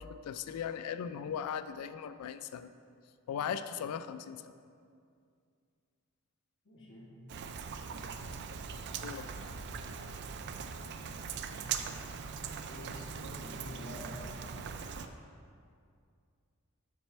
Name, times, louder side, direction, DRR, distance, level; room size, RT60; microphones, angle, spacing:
voice 1, 0.0-2.7 3.3-4.5 9.0-9.3, left 8 dB, 85° left, 14 dB, 0.3 m, -38 dB
voice 2, 6.6-7.1 11.4-11.7 12.6-14.8, left 1 dB, 60° left, -5 dB, 1.6 m, -48 dB
Rain, 7.3-15.1, right 6 dB, 55° right, 0.3 m, -41 dB
6.0 x 4.2 x 4.4 m, 2.3 s
head